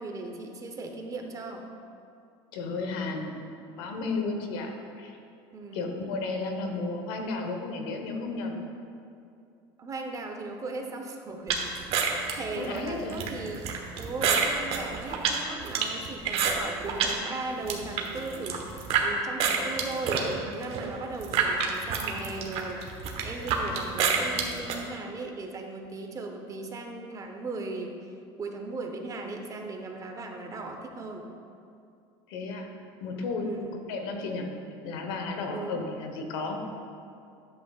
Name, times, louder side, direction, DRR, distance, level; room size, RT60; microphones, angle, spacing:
voice 1, 0.0-1.7 5.5-5.8 9.8-11.7 12.0-13.7 14.0-22.8 23.2-27.9 28.4-31.3 33.4-33.8 35.5-35.8, right 3 dB, 25° right, 3 dB, 0.9 m, -37 dB
voice 2, 2.5-3.4 3.8-5.2 5.7-8.6 12.6-13.2 32.3-32.7 33.0-33.5 33.9-34.5 34.8-36.6, left 3 dB, 75° left, 4 dB, 1.1 m, -33 dB
sound 1, 11.5-17.2 17.5-19.1 19.4-24.8, right 6 dB, 50° right, 1.1 m, -28 dB
10.5 x 7.8 x 2.4 m, 2.5 s
supercardioid pair, 115°, 13 cm